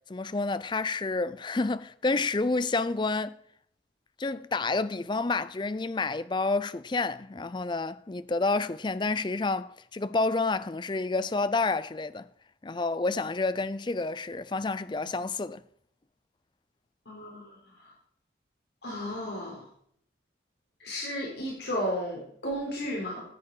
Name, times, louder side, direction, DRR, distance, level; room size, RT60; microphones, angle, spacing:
voice 1, 0.1-3.4 4.2-12.3 12.6-15.6, left 3 dB, 25° left, 0.4 m, -29 dB
voice 2, 17.1-17.6 18.8-19.6 20.8-23.2, equal, 65° left, 4.1 m, -33 dB
14.0 x 8.2 x 4.8 m
head